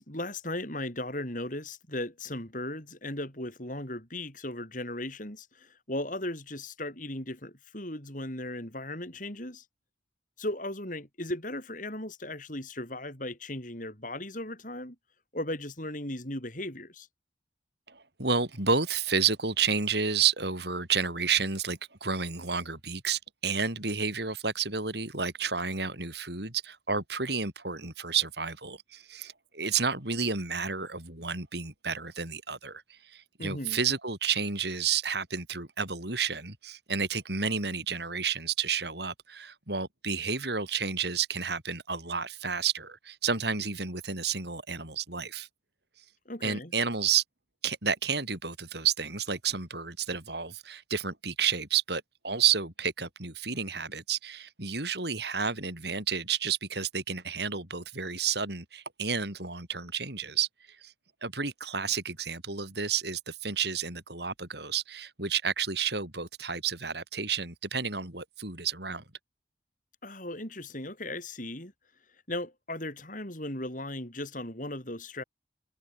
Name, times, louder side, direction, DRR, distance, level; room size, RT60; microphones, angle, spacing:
voice 1, 0.0-9.6 10.4-14.9 15.3-17.1 33.4-33.8 46.2-46.7 70.0-71.7 72.3-75.2, left 1 dB, 45° left, 6.7 m, -37 dB
voice 2, 17.9-45.5 46.4-47.2 47.6-60.9 61.2-69.0, right 6 dB, 60° right, 5.2 m, -31 dB
head